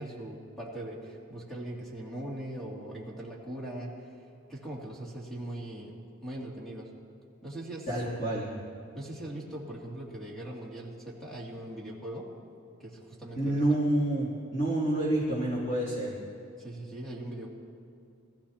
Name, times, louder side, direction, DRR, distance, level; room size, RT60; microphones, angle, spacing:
voice 1, 0.0-4.1 4.5-6.0 6.2-6.9 7.4-8.0 8.9-12.3 12.8-13.8 16.6-17.5, right 1 dB, ahead, -4 dB, 2.7 m, -40 dB
voice 2, 7.9-8.5 13.3-16.1, right 1 dB, 35° left, -9 dB, 3.2 m, -28 dB
22.5 x 14.5 x 2.9 m, 2.7 s
head